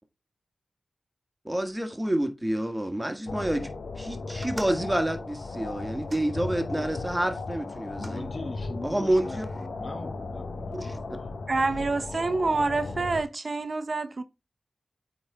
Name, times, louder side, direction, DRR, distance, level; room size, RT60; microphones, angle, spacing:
voice 1, 1.4-3.7 4.0-8.2 8.8-9.4 10.7-10.9, right 1 dB, 15° right, 1.6 m, -28 dB
sound 1, 3.3-13.2, left 3 dB, 80° left, 0.8 m, -36 dB
sound 2, 4.3-7.0 7.7-8.2 9.0-9.7, right 2 dB, 40° right, 1.4 m, -47 dB
voice 2, 7.9-11.3, left 2 dB, 50° left, 2.2 m, -41 dB
voice 3, 11.5-14.2, right 3 dB, 60° right, 0.7 m, -27 dB
8.5 x 4.1 x 3.4 m
cardioid pair, 45°, 0 cm